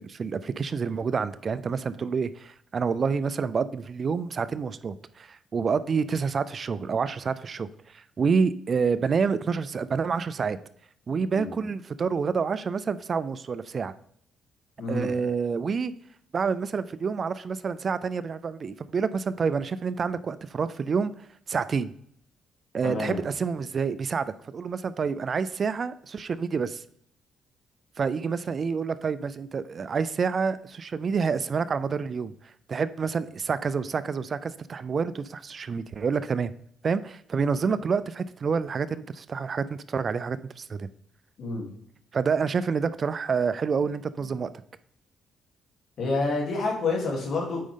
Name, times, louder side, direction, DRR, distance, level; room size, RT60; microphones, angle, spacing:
voice 1, 0.0-10.6 11.1-13.9 14.9-15.9 16.3-21.1 21.5-21.9 22.7-26.8 28.0-32.3 32.7-36.5 36.8-40.9 42.1-44.5, right 5 dB, 45° right, 15 dB, 0.4 m, -28 dB
voice 2, 14.8-15.1 22.8-23.2 41.4-41.7 46.0-47.6, left 3 dB, 60° left, -1 dB, 3.2 m, -28 dB
8.5 x 5.2 x 3.7 m, 0.67 s
cardioid pair, 90°, 0 cm